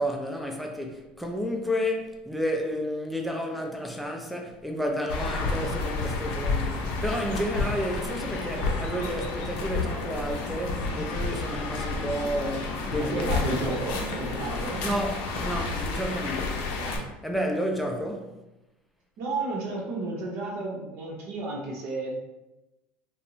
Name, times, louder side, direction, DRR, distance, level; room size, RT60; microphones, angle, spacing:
voice 1, 0.0-13.6 14.8-16.6 17.2-18.3, equal, ahead, 0.3 m, -31 dB
sound 1, 5.1-17.0, left 3 dB, 75° left, 0.5 m, -31 dB
sound 2, 5.1-16.3, equal, 30° right, 0.9 m, -42 dB
voice 2, 13.0-14.8 16.5-17.1 19.2-22.2, right 2 dB, 65° right, 0.7 m, -32 dB
2.6 x 2.0 x 2.9 m
supercardioid pair, 120°, 5 cm